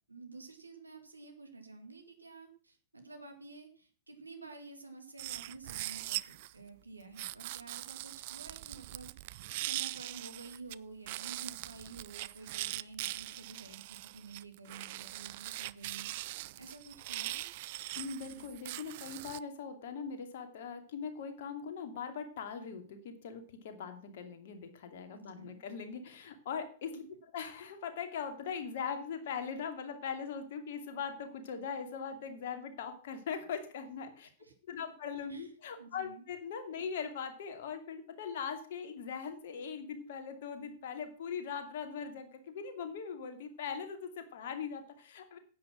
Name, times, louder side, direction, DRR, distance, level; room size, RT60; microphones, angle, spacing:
voice 1, 0.1-16.1 16.5-17.5 18.2-18.5 25.1-25.6 34.4-34.5 35.3-35.5 35.8-36.2, right 3 dB, 85° right, 6 dB, 2.5 m, -51 dB
sound 1, 5.2-6.5 7.2-10.8 11.1-19.4, right 18 dB, 50° right, 0.4 m, -41 dB
voice 2, 17.9-27.0 27.3-34.3 34.7-45.4, left 6 dB, 55° left, 6 dB, 2.5 m, -41 dB
10.5 x 8.9 x 6.1 m, 0.42 s
figure-of-eight pair, 100°, 0 cm